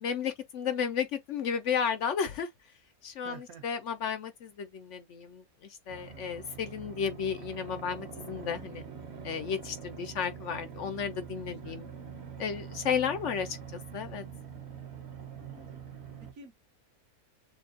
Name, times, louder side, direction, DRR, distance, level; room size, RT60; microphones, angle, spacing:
voice 1, 0.0-2.5 3.0-8.8 9.2-11.9 12.4-13.6 13.9-14.2, left 7 dB, 65° left, 0.9 m, -33 dB
voice 2, 3.2-3.6 11.4-11.8 15.3-15.8 16.2-16.5, right 5 dB, 75° right, 1.8 m, -50 dB
sound 1, 5.9-16.3, right 7 dB, 50° right, 1.2 m, -44 dB
6.9 x 2.4 x 2.4 m
omnidirectional pair, 1.5 m